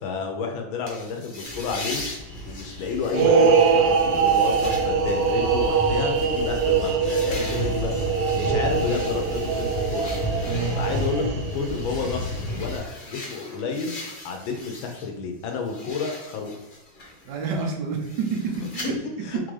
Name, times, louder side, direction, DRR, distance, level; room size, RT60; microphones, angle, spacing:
voice 1, 0.0-2.0 2.4-10.1 10.8-12.3 12.5-14.0 14.2-16.5 18.8-19.5, left 4 dB, 75° left, 3 dB, 1.5 m, -30 dB
sound 1, 0.9-15.1 15.4-18.9, left 2 dB, 60° left, 0.5 m, -41 dB
sound 2, 1.4-12.8, left 1 dB, 25° left, 1.1 m, -32 dB
sound 3, 3.1-11.7, right 5 dB, 85° right, 0.8 m, -23 dB
voice 2, 7.4-7.7 10.4-10.8 17.2-19.5, right 5 dB, 65° right, 3 dB, 1.3 m, -29 dB
4.2 x 3.7 x 3.2 m, 1.1 s
omnidirectional pair, 2.2 m